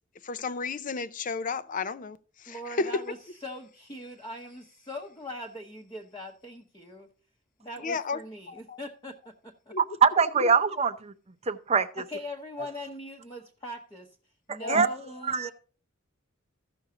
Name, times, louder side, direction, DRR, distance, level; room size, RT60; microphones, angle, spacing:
voice 1, 0.2-2.9 7.8-8.2 8.5-8.8 9.7-9.8 10.4-10.5 14.6-14.8, left 4 dB, 40° left, 0.5 m, -33 dB
voice 2, 2.5-7.1 7.6-9.7 11.9-14.1 14.5-15.5, left 1 dB, 20° left, 0.9 m, -41 dB
voice 3, 9.8-11.1 11.5-12.0 14.5-14.9 15.3-15.5, right 5 dB, 30° right, 0.6 m, -24 dB
14.5 x 6.3 x 3.7 m
head